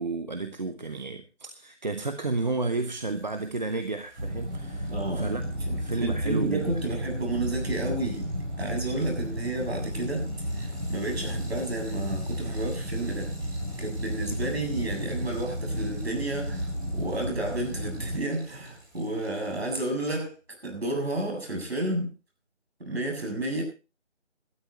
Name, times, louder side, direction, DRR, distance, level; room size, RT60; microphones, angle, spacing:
voice 1, 0.0-5.4 5.8-6.7 14.3-14.6, right 3 dB, 40° right, 8 dB, 1.0 m, -32 dB
Frying (food), 2.7-19.9, right 1 dB, 20° right, 4.7 m, -54 dB
sound 1, 4.2-18.2, equal, 85° right, 7.3 m, -33 dB
voice 2, 4.9-5.3 5.7-8.3 8.6-10.3 10.6-13.3 13.8-20.3 20.6-22.1 22.8-23.6, right 2 dB, 60° right, 2 dB, 7.2 m, -31 dB
19.5 x 12.5 x 3.1 m, 0.31 s
figure-of-eight pair, 160°, 35 cm